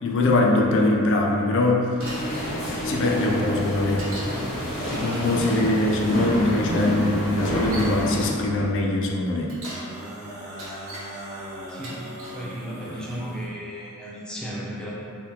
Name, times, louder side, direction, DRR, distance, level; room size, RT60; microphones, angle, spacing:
voice 1, 0.0-1.9 2.8-4.0 4.9-9.6, left 2 dB, 60° left, 0 dB, 0.4 m, -22 dB
sound 1, 2.0-8.3, equal, 85° left, 1.1 m, -28 dB
Bicycle, 2.0-2.6 4.0-4.4 4.9-5.3 6.4-6.5 7.3-8.0 9.3-9.9 10.4-11.1 11.7-12.4 13.0-13.4, right 1 dB, 70° right, 0.8 m, -39 dB
sound 2, 4.1-7.5 9.5-13.5, equal, 50° right, 1.3 m, -40 dB
voice 2, 11.7-12.1 12.3-14.9, equal, 5° left, -6 dB, 0.5 m, -35 dB
4.3 x 2.3 x 2.7 m, 2.3 s
head